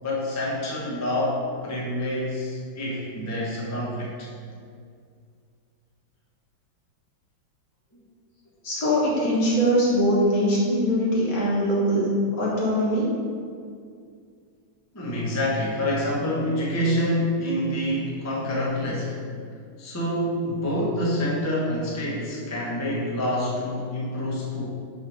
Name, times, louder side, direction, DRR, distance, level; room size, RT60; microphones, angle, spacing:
voice 1, 0.0-4.3 7.9-8.0 14.9-19.2 19.8-24.6, left 1 dB, 20° left, -5 dB, 0.4 m, -27 dB
voice 2, 8.6-12.1 12.4-13.1, equal, 55° left, -6 dB, 1.8 m, -22 dB
5.6 x 3.4 x 5.8 m, 2.2 s
omnidirectional pair, 2.2 m